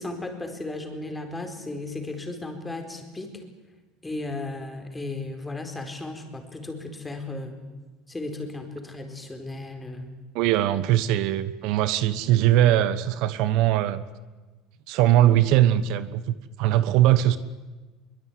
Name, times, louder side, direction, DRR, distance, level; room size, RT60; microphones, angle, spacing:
voice 1, 0.0-3.4 4.0-7.6 8.1-10.1, left 2 dB, 10° left, 4 dB, 4.5 m, -35 dB
voice 2, 10.3-14.0 14.9-17.4, right 12 dB, 65° right, 14 dB, 1.1 m, -21 dB
23.5 x 22.5 x 9.5 m, 1.3 s
cardioid pair, 135°, 0 cm